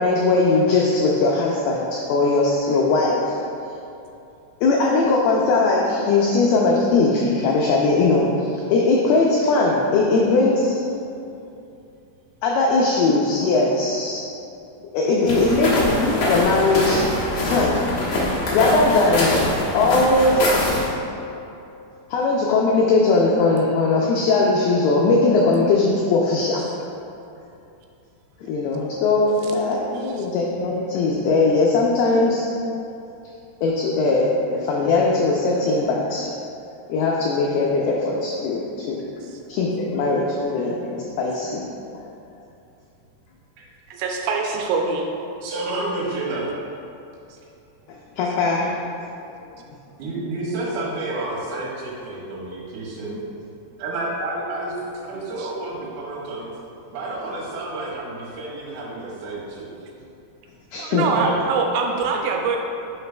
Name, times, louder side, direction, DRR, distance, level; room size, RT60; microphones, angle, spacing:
voice 1, 0.0-3.4 4.6-10.8 12.4-14.2 14.9-17.0 17.3-17.8 18.1-18.2 18.5-19.4 19.7-20.8 22.1-26.6 28.5-32.4 33.6-36.3 36.9-39.2 39.5-41.6 48.2-48.7 60.7-61.1, left 3 dB, 85° left, -2 dB, 2.2 m, -20 dB
sound 1, 15.3-20.9, left 1 dB, 65° left, 1.7 m, -23 dB
voice 2, 43.9-45.1 55.4-55.5 60.8-62.6, right 4 dB, 80° right, 2 dB, 2.6 m, -24 dB
voice 3, 45.4-46.5 50.0-53.2 53.8-54.8 55.0-56.5 56.9-59.9 61.1-61.4, right 2 dB, 65° right, -5 dB, 2.3 m, -30 dB
10.5 x 5.0 x 2.3 m, 2.7 s
omnidirectional pair, 5.1 m